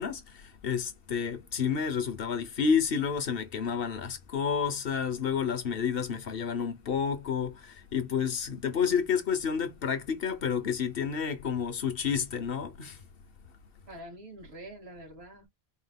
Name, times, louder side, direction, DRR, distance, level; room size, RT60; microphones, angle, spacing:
voice 1, 0.0-13.0, left 6 dB, 70° left, 1.1 m, -30 dB
voice 2, 13.9-15.5, right 1 dB, 85° right, 2.2 m, -45 dB
4.4 x 3.8 x 2.3 m
omnidirectional pair, 1.0 m